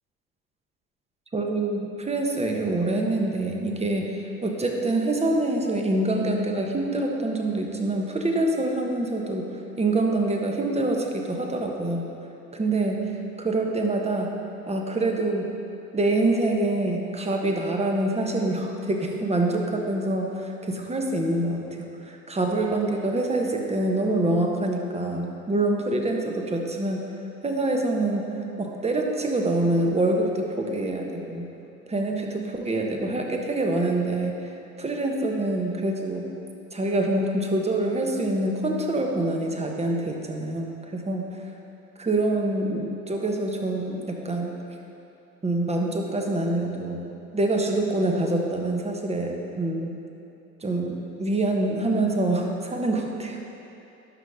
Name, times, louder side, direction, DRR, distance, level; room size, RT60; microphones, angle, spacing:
voice 1, 1.3-9.5 9.8-12.1 12.5-13.1 13.4-14.3 14.7-15.5 15.9-27.1 27.4-28.3 28.6-31.5 31.9-34.3 34.8-36.3 36.7-41.3 42.0-44.5 45.4-47.0 47.3-50.0 50.6-53.4, right 2 dB, 20° right, 1 dB, 1.2 m, -25 dB
12.0 x 5.4 x 3.7 m, 2.9 s
hypercardioid pair, 60°, 32 cm